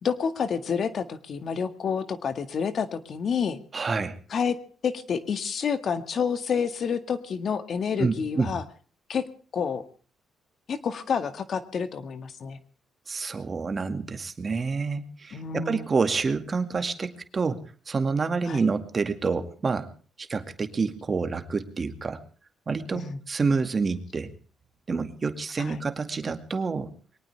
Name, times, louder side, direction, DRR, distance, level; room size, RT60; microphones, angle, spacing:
voice 1, 0.0-3.6 4.3-4.6 4.8-8.6 9.1-9.2 9.5-9.8 10.7-12.6 15.3-15.9 18.5-18.6 22.9-23.2 25.6-25.8, left 6 dB, 55° left, 11 dB, 1.8 m, -29 dB
voice 2, 3.7-4.2 8.0-8.5 13.1-19.9 20.2-22.2 22.7-24.3 24.9-26.9, right 4 dB, 35° right, 8 dB, 2.2 m, -28 dB
22.5 x 18.5 x 3.5 m, 0.40 s
cardioid pair, 90°, 0 cm